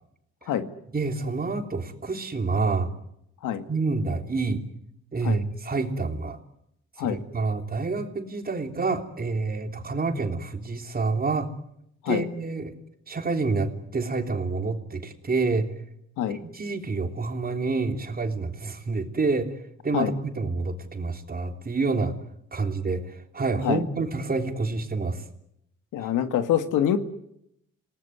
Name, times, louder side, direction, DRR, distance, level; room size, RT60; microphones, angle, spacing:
voice 1, 0.9-2.9 3.7-4.6 5.1-6.4 7.0-11.5 12.1-12.7 13.1-15.7 16.3-22.2 22.5-25.2, right 3 dB, 30° right, 5 dB, 3.4 m, -28 dB
voice 2, 25.9-27.0, left 10 dB, 85° left, 9 dB, 2.0 m, -25 dB
28.0 x 19.0 x 9.6 m, 0.78 s
cardioid pair, 90°, 30 cm